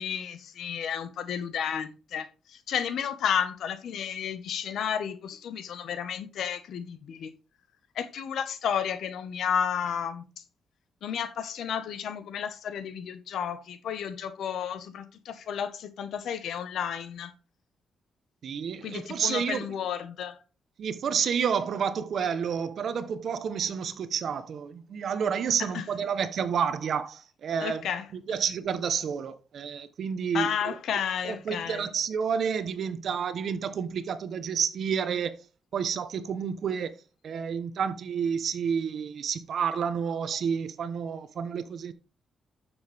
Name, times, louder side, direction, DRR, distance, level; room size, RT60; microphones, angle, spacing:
voice 1, 0.0-7.3 7.9-10.2 11.0-17.3 18.8-20.4 25.6-25.8 27.6-28.4 30.3-31.9, left 8 dB, 75° left, 1.4 m, -32 dB
voice 2, 18.4-19.6 20.8-27.8 28.3-30.8 31.2-35.3 35.7-36.9 37.2-41.9, right 7 dB, 60° right, 1.0 m, -30 dB
10.0 x 7.1 x 3.5 m
cardioid pair, 120°, 0 cm